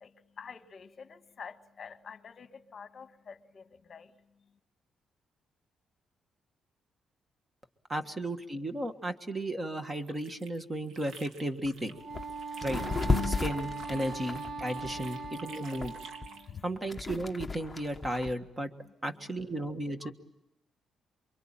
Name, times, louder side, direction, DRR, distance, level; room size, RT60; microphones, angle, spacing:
voice 1, 0.4-4.1 13.3-13.4 16.4-16.6 20.0-20.1, left 6 dB, 35° left, 1.5 m, -47 dB
voice 2, 7.9-12.0 12.6-12.8 13.2-15.9 16.6-18.7 19.0-20.1, right 1 dB, 15° right, 1.5 m, -34 dB
sound 1, 9.8-12.0 12.3-16.5, right 4 dB, 75° right, 3.2 m, -51 dB
sound 2, 11.6-11.7 12.1-12.3 12.6-15.3 15.8-18.3, left 3 dB, 10° left, 1.2 m, -33 dB
Wind instrument woodwind instrument, 11.9-16.5, right 4 dB, 45° right, 2.4 m, -40 dB
28.0 x 23.5 x 8.9 m
cardioid pair, 175°, 0 cm